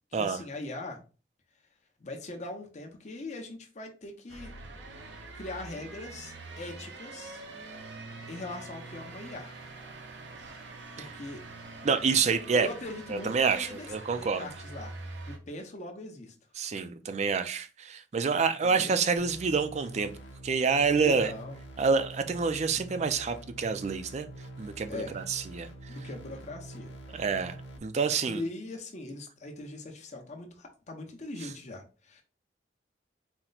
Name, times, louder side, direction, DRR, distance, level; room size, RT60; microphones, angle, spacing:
voice 1, 0.1-1.0 2.0-4.5 5.3-7.4 8.3-9.5 10.6-11.4 12.5-13.9 14.1-14.9 15.2-16.3 18.6-18.9 20.9-21.6 24.9-25.2 25.9-27.0 28.3-32.2, left 2 dB, 40° left, 0.8 m, -41 dB
sound 1, 4.3-15.4, right 3 dB, 90° right, 0.8 m, -45 dB
voice 2, 11.8-12.7 13.1-14.5 16.6-20.1 20.4-21.3 21.8-25.7 27.1-28.4 31.4-31.5, right 5 dB, 40° right, 0.4 m, -28 dB
sound 2, 19.2-27.8, right 1 dB, 90° left, 0.9 m, -46 dB
4.3 x 2.1 x 3.9 m
head